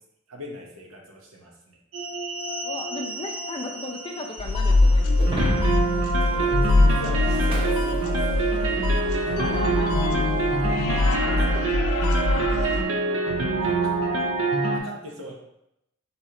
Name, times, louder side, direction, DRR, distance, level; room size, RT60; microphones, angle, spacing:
voice 1, 0.3-1.8 6.2-8.2 9.3-9.6 11.3-11.9 13.6-13.9 14.7-15.4, equal, 85° right, 0 dB, 1.0 m, -39 dB
sound 1, 1.9-14.8, right 3 dB, 65° right, 0.6 m, -26 dB
voice 2, 2.6-5.5 9.1-9.9 10.8-11.4, left 2 dB, 25° left, 2 dB, 0.4 m, -36 dB
sound 2, 4.4-12.8, left 2 dB, 85° left, 0.5 m, -23 dB
Shatter, 5.2-8.7, equal, 25° right, 0.8 m, -33 dB
4.2 x 3.1 x 3.7 m, 0.83 s
head